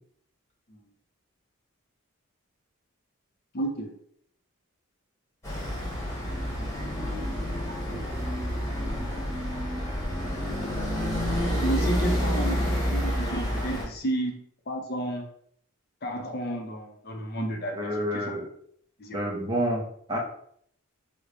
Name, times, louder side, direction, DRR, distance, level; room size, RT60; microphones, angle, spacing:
voice 1, 3.5-3.9 11.6-15.3 16.0-18.3 19.0-19.2, right 1 dB, 45° left, 2 dB, 0.6 m, -32 dB
sound 1, 5.4-13.8, equal, 15° left, 1.1 m, -29 dB
voice 2, 17.8-18.5 19.1-20.2, equal, 20° right, -1 dB, 0.6 m, -29 dB
3.2 x 2.1 x 3.8 m, 0.65 s
head